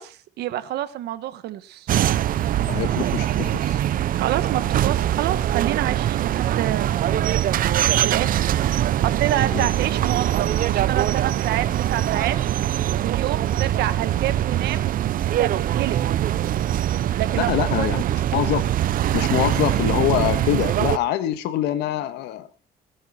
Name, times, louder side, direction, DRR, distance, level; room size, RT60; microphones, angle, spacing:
voice 1, 0.0-1.9 4.1-6.9 8.0-8.4 9.0-12.3 13.0-14.9 15.2-16.2 17.2-17.9, right 13 dB, 75° right, 13 dB, 1.3 m, -28 dB
sound 1, 1.9-21.0, right 12 dB, 55° right, 0.7 m, -22 dB
voice 2, 2.7-3.8 9.5-9.7 17.4-18.0 18.3-18.6 19.1-22.5, left 12 dB, 85° left, 11 dB, 1.6 m, -24 dB
19.5 x 9.4 x 4.3 m, 0.37 s
cardioid pair, 110°, 17 cm